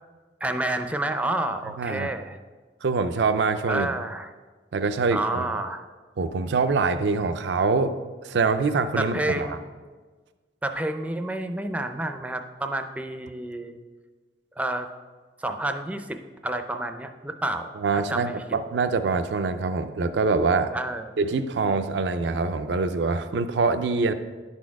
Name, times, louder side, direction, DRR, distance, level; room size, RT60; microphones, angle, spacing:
voice 1, 0.4-2.4 3.7-4.3 5.1-5.8 9.0-9.7 10.6-13.8 14.6-14.9 15.4-16.2 16.4-18.3 20.7-21.1, right 1 dB, 10° right, 6 dB, 0.4 m, -29 dB
voice 2, 1.8-2.1 2.8-3.9 4.7-5.5 6.2-7.9 8.2-9.6 17.8-20.7 21.2-24.1, right 4 dB, 75° right, 9 dB, 0.4 m, -24 dB
10.5 x 4.2 x 4.6 m, 1.4 s
head